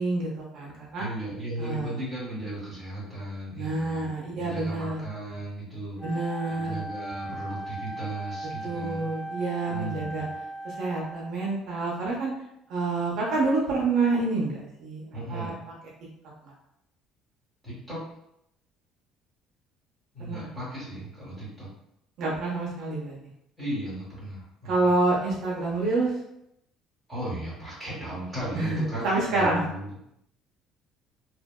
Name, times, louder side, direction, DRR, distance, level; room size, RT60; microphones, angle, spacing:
voice 1, 0.0-1.1 1.6-1.9 3.6-5.0 6.0-6.7 8.6-10.2 10.6-12.3 12.7-15.5 16.4-16.5 20.3-20.5 22.2-23.2 24.6-26.1 28.5-29.6, right 3 dB, 55° right, -4 dB, 0.6 m, -28 dB
voice 2, 1.0-4.1 4.3-9.1 9.7-10.4 15.1-15.5 17.6-18.0 20.1-21.7 23.6-24.9 27.1-30.1, right 1 dB, ahead, -9 dB, 1.1 m, -36 dB
Wind instrument woodwind instrument, 6.0-11.5, right 1 dB, 20° left, 0.5 m, -38 dB
2.8 x 2.6 x 2.2 m, 0.80 s
cardioid pair, 170°, 0 cm